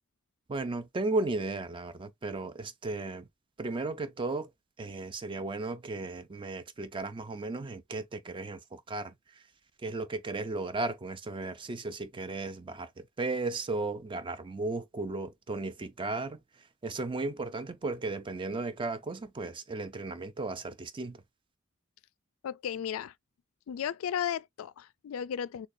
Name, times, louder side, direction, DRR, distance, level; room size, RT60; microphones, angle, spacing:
voice 1, 0.5-3.3 3.6-4.5 4.8-9.1 9.8-16.4 16.8-21.2, right 3 dB, 25° right, 0.3 m, -35 dB
voice 2, 22.4-23.1 23.7-25.7, left 8 dB, 85° left, 0.3 m, -34 dB
6.5 x 2.3 x 2.5 m
head